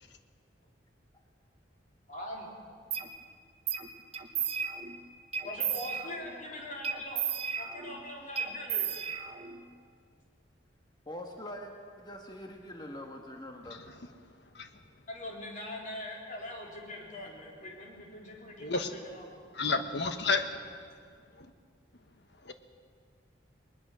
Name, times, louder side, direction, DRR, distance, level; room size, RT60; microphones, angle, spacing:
voice 1, 2.1-2.6 5.4-7.2 7.6-9.1 15.1-19.5, left 1 dB, 40° left, -1 dB, 3.7 m, -42 dB
sound 1, 2.9-3.1 3.7-3.9 4.1-4.9 5.3-6.3 6.8-8.0 8.4-9.6, right 7 dB, 30° right, 1.1 m, -34 dB
voice 2, 11.1-11.7 12.0-13.8, left 1 dB, 20° left, 2 dB, 1.5 m, -43 dB
voice 3, 18.6-18.9 19.5-20.5 22.5-22.6, left 4 dB, 65° left, 8 dB, 1.3 m, -30 dB
21.0 x 20.5 x 6.3 m, 2.1 s
head